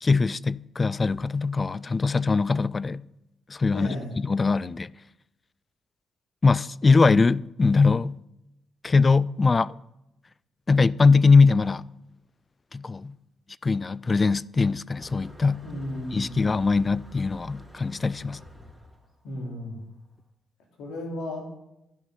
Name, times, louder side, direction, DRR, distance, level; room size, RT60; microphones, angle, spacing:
voice 1, 0.0-3.0 3.5-4.9 6.4-8.2 8.8-9.8 10.7-11.9 12.7-13.1 13.6-15.6 16.1-18.4, left 4 dB, 35° left, 0.3 m, -21 dB
voice 2, 3.7-4.1 15.6-16.5 19.2-19.8 20.8-21.5, left 1 dB, 70° left, 2.7 m, -34 dB
Motor vehicle (road), 14.9-20.1, equal, 5° left, 2.3 m, -48 dB
11.0 x 6.3 x 5.4 m
hypercardioid pair, 40°, 0 cm